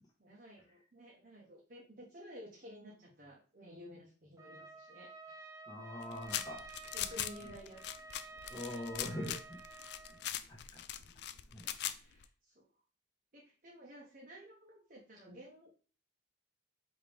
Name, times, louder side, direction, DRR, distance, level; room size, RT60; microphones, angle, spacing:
voice 1, 0.2-5.5 6.9-7.9 8.7-8.8 11.6-12.6 13.3-15.7, equal, 45° right, -3 dB, 1.0 m, -53 dB
Trumpet, 4.4-10.3, right 3 dB, 15° right, 0.5 m, -52 dB
voice 2, 5.7-6.6 8.5-9.6 10.5-10.8 11.5-11.6, left 1 dB, 20° left, -2 dB, 1.2 m, -43 dB
sound 1, 6.0-12.2, left 11 dB, 55° left, 0.3 m, -41 dB
5.0 x 3.0 x 3.4 m, 0.38 s
head